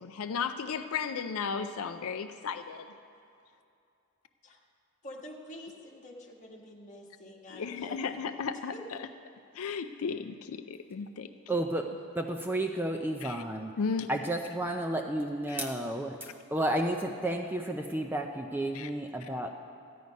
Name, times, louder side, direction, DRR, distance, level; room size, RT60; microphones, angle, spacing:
voice 1, 0.0-2.9 7.5-8.7 9.0-9.1 9.5-11.3 13.2-13.4 13.8-14.1 15.5-15.7 18.7-18.9 19.2-19.3, left 6 dB, 75° left, 9 dB, 0.4 m, -35 dB
voice 2, 5.0-8.3 8.7-8.8, left 1 dB, 35° left, -2 dB, 1.4 m, -47 dB
voice 3, 11.5-11.9 12.2-13.7 14.1-19.5, right 1 dB, 10° right, 3 dB, 0.4 m, -32 dB
14.0 x 9.4 x 5.3 m, 2.6 s
head